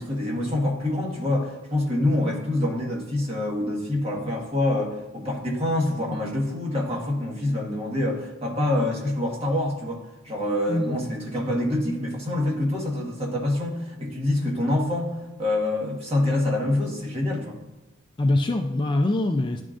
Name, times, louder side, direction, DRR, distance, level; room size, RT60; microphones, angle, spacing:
voice 1, 0.0-17.6, left 1 dB, 30° right, -2 dB, 1.4 m, -26 dB
voice 2, 10.7-11.2 18.2-19.6, left 2 dB, 25° left, 4 dB, 0.4 m, -24 dB
11.0 x 3.7 x 2.5 m, 1.0 s
head